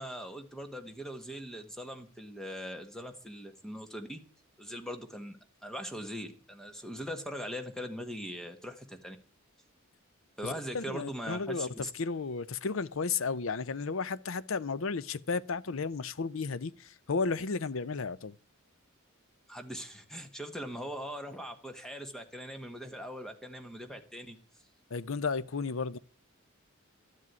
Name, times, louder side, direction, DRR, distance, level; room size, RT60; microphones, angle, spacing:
voice 1, 0.0-4.2 4.6-5.4 5.6-9.2 10.4-11.9 19.5-24.4, equal, 5° left, 1.5 m, -41 dB
voice 2, 10.4-18.4 24.9-26.0, left 4 dB, 70° left, 0.6 m, -33 dB
12.5 x 7.6 x 9.5 m
head